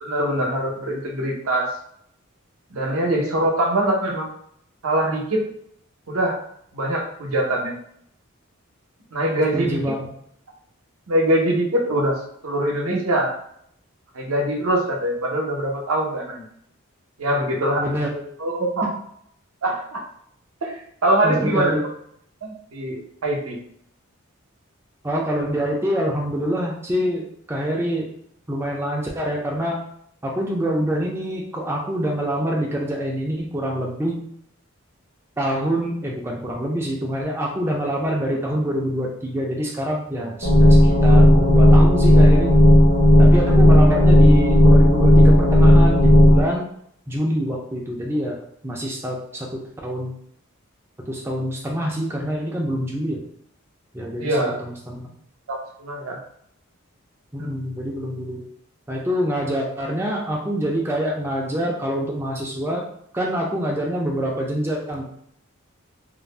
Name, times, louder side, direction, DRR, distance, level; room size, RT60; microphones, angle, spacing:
voice 1, 0.0-1.8 2.7-4.3 4.8-5.4 6.1-6.4 6.7-7.7 9.1-9.8 11.1-13.4 14.1-16.4 17.2-17.8 18.4-18.9 19.6-20.0 20.6-21.8 22.4-23.6 43.4-43.5 54.2-54.5 55.5-56.2 57.4-57.5, right 1 dB, 80° right, 0 dB, 0.6 m, -23 dB
voice 2, 9.5-10.1 17.8-18.2 21.2-21.8 25.0-28.1 28.5-29.8 30.2-34.2 35.4-42.5 43.2-46.7 47.1-48.4 48.6-50.1 51.1-53.2 53.9-55.1 57.3-58.4 58.9-62.8 63.1-65.0, equal, 10° right, -2 dB, 0.3 m, -25 dB
sound 1, 40.4-46.4, left 1 dB, 65° left, 0.7 m, -12 dB
2.5 x 2.0 x 3.1 m, 0.69 s
head